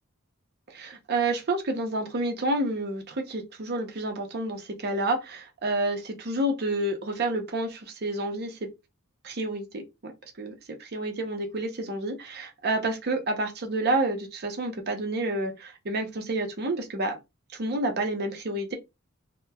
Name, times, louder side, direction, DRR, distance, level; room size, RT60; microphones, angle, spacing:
voice 1, 0.7-8.7 9.2-10.1 10.4-10.5 10.8-17.2 17.5-18.7, right 2 dB, 45° right, 0.6 m, -29 dB
2.9 x 2.1 x 2.2 m
head